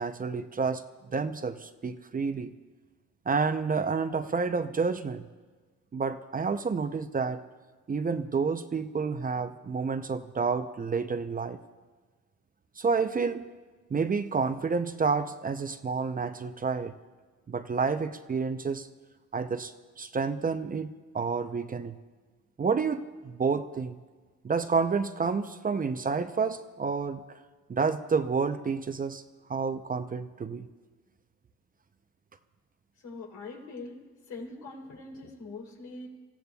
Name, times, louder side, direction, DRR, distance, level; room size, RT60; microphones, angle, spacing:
voice 1, 0.0-2.5 3.3-5.2 5.9-7.4 7.9-11.6 12.8-13.4 13.9-16.9 17.5-18.9 19.3-21.9 22.6-24.0 24.4-27.2 27.7-29.2 29.5-30.7, right 5 dB, 30° right, 9 dB, 0.6 m, -29 dB
voice 2, 33.0-34.0 34.3-36.1, left 3 dB, 80° left, -1 dB, 3.4 m, -42 dB
29.5 x 15.0 x 2.3 m, 1.4 s
cardioid pair, 90°, 30 cm